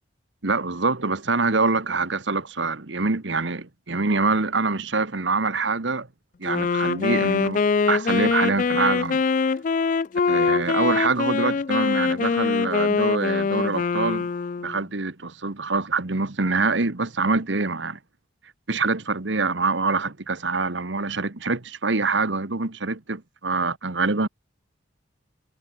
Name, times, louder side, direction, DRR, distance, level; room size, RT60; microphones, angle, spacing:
voice 1, 0.4-6.1 6.4-7.6 7.9-9.2 10.3-14.3 14.6-18.0 18.7-24.3, right 3 dB, 65° right, 1.4 m, -25 dB
Wind instrument woodwind instrument, 6.4-14.8, left 5 dB, 40° left, 0.3 m, -23 dB
head